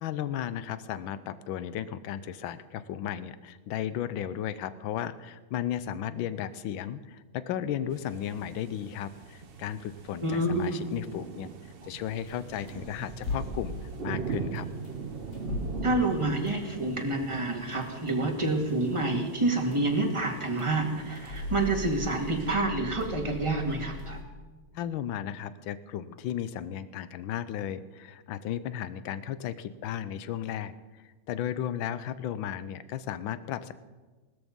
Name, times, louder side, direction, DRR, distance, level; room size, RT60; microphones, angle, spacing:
voice 1, 0.0-11.5 11.9-13.8 14.0-14.7 24.7-30.7 31.3-33.7, left 10 dB, 75° left, 15 dB, 1.5 m, -34 dB
sound 1, 7.9-22.5, right 5 dB, 45° right, 0.7 m, -41 dB
voice 2, 10.2-10.9 15.8-24.2, right 2 dB, 15° right, 1 dB, 2.0 m, -28 dB
sound 2, 12.0-24.2, left 2 dB, 60° left, 3.2 m, -41 dB
17.5 x 13.0 x 5.4 m, 1.3 s
omnidirectional pair, 2.2 m